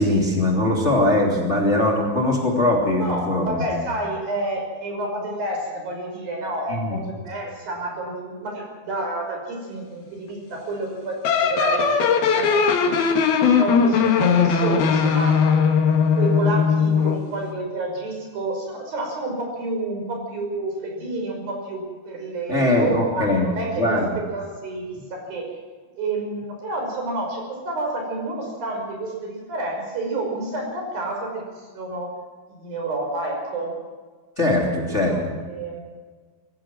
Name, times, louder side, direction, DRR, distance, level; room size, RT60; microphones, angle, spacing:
voice 1, 0.0-3.5 6.7-7.0 22.5-24.1 34.4-35.4, left 1 dB, 20° left, -1 dB, 2.9 m, -21 dB
voice 2, 3.0-13.1 13.6-15.5 16.2-25.5 26.0-32.1 32.5-33.7 34.8-35.2 35.5-35.9, right 2 dB, 70° right, 1 dB, 7.4 m, -29 dB
sound 1, 11.3-17.3, left 6 dB, 80° left, 3.7 m, -19 dB
22.0 x 16.0 x 7.6 m, 1.5 s
omnidirectional pair, 4.3 m